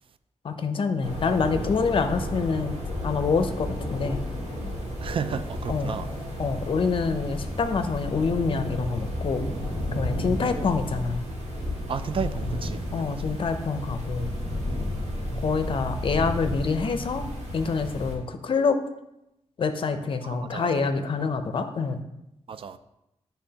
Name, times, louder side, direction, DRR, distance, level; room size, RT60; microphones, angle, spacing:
voice 1, 0.4-2.7 3.0-4.2 5.7-6.0 6.4-9.4 10.0-11.2 12.9-14.3 15.4-17.2 17.5-18.8 19.6-22.0, left 4 dB, 50° left, 0.5 m, -26 dB
sound 1, 1.0-18.2, left 1 dB, 80° right, 1.6 m, -32 dB
voice 2, 5.0-6.1 10.4-10.8 11.9-13.3 20.2-20.7 22.5-22.8, right 6 dB, 50° right, 0.3 m, -33 dB
9.7 x 3.4 x 2.8 m
wide cardioid pair, 135°, 12 cm